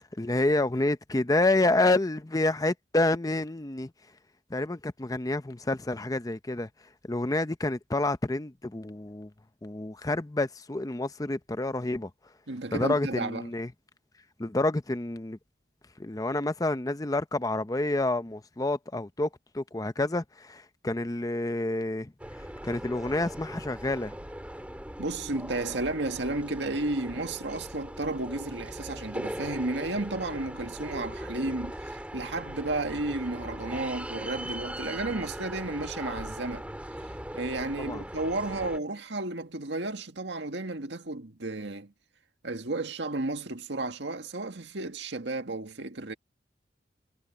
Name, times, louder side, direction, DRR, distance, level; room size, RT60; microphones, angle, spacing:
voice 1, 0.2-3.9 4.5-6.7 7.1-9.3 9.6-12.1 12.7-13.7 14.4-15.4 16.0-19.3 19.5-22.1 22.6-24.2 37.8-38.1, left 2 dB, 20° left, 0.7 m, -28 dB
voice 2, 12.5-13.4 25.0-36.7 37.3-41.9 42.4-46.1, right 2 dB, 85° right, 1.9 m, -33 dB
sound 1, 22.2-38.8, right 1 dB, 10° right, 3.5 m, -40 dB
head